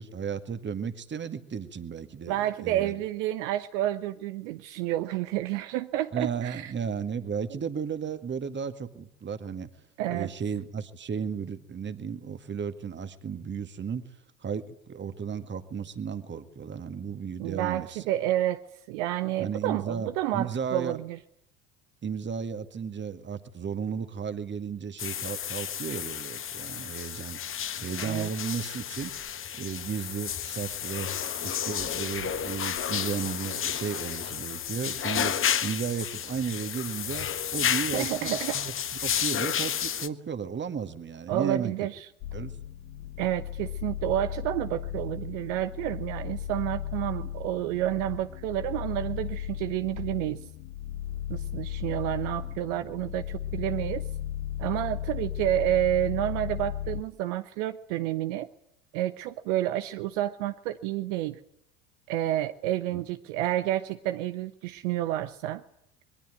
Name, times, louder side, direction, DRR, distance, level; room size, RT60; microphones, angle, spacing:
voice 1, 0.0-3.0 6.1-9.7 10.1-14.0 14.4-18.1 19.4-21.0 22.0-27.4 27.8-29.1 29.6-31.1 31.4-35.3 35.6-38.7 39.0-41.7 42.3-42.5 62.9-63.0, right 6 dB, 25° right, 10 dB, 2.1 m, -34 dB
voice 2, 2.3-6.7 10.0-10.3 17.4-18.6 18.9-21.2 28.0-28.3 37.9-38.6 41.3-42.1 43.2-50.4 51.3-54.1 54.6-58.5 58.9-61.4 62.1-65.6, right 14 dB, 60° right, 10 dB, 1.2 m, -30 dB
sound 1, 25.0-40.1, left 9 dB, 30° left, 1.5 m, -32 dB
sound 2, 42.2-57.0, left 12 dB, 50° left, 1.7 m, -36 dB
27.0 x 22.0 x 9.3 m, 0.73 s
figure-of-eight pair, 75°, 43 cm